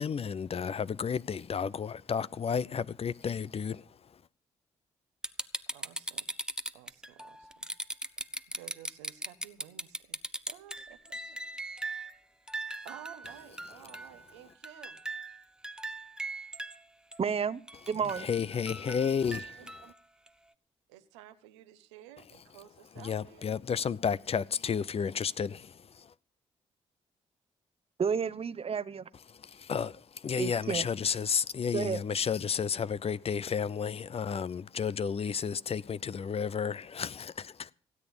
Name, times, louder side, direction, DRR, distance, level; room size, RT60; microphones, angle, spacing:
voice 1, 0.0-3.8 18.2-19.5 23.0-26.1 29.3-37.7, left 7 dB, 45° left, 0.6 m, -32 dB
sound 1, 5.2-12.1 12.5-14.3 14.6-16.8 17.1-17.2 17.7-19.9 20.3-20.4, right 2 dB, 5° right, 0.9 m, -39 dB
voice 2, 5.7-6.4 6.7-7.7 8.5-10.2 10.5-11.4 12.4-15.0 19.1-19.9 20.9-23.5, right 13 dB, 90° right, 0.9 m, -53 dB
voice 3, 17.2-17.6 17.9-18.3 28.0-29.1 30.4-30.9 31.7-32.0, right 6 dB, 45° right, 0.8 m, -31 dB
17.0 x 8.7 x 7.0 m
hypercardioid pair, 40°, 14 cm